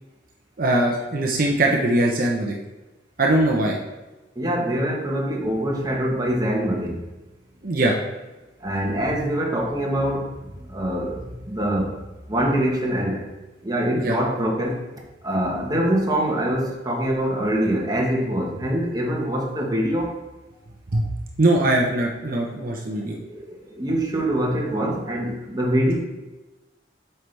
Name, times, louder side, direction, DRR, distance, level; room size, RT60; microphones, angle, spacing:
voice 1, 0.6-2.5 3.2-3.8 7.6-8.0 13.9-14.2 20.9-21.1 21.4-23.2, right 1 dB, 55° right, 0 dB, 0.8 m, -21 dB
voice 2, 4.3-7.0 8.6-12.0 12.3-13.3 13.6-14.8 15.2-20.2 23.1-25.9, right 1 dB, 20° right, -1 dB, 1.2 m, -24 dB
7.8 x 5.6 x 3.3 m, 1.1 s
head